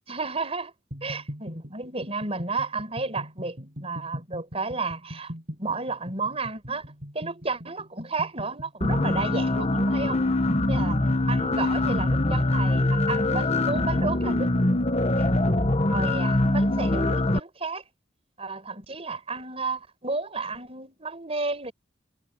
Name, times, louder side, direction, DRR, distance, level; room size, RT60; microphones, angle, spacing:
voice 1, 0.1-0.7 1.0-5.3 5.6-6.8 7.1-10.2 10.7-11.0 11.3-14.5 15.2-15.3 15.9-17.8 18.4-21.7, right 3 dB, 30° right, 5.1 m, -32 dB
sound 1, 0.9-13.2, equal, 50° right, 7.8 m, -41 dB
sound 2, 8.8-17.4, left 2 dB, 35° left, 1.3 m, -23 dB
head